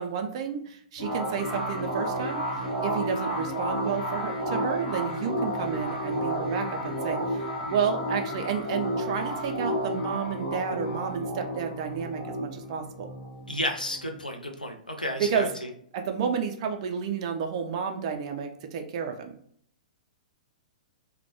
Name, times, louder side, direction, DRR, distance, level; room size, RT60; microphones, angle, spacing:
voice 1, 0.0-2.4 2.8-7.4 7.7-13.1 15.2-15.5 15.9-19.4, right 7 dB, 40° right, 5 dB, 0.3 m, -31 dB
sound 1, 1.0-14.2, equal, 65° left, 1.0 m, -31 dB
voice 2, 13.5-15.5, left 1 dB, 90° left, 3 dB, 0.4 m, -32 dB
2.1 x 2.1 x 2.8 m, 0.63 s
figure-of-eight pair, 110°, 4 cm